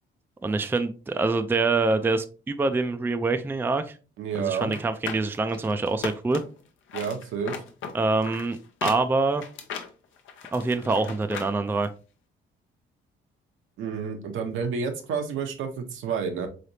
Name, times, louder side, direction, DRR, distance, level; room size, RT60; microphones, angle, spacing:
voice 1, 0.4-4.0 4.4-6.4 7.9-9.4 10.5-11.9, right 3 dB, 10° right, 0.4 m, -25 dB
voice 2, 4.2-4.7 6.9-7.5 13.8-16.5, right 6 dB, 80° right, 0.9 m, -30 dB
sound 1, 4.6-6.6 6.9-11.5 11.8-11.9, left 6 dB, 80° left, 0.8 m, -37 dB
3.9 x 3.3 x 2.6 m
cardioid pair, 90°, 20 cm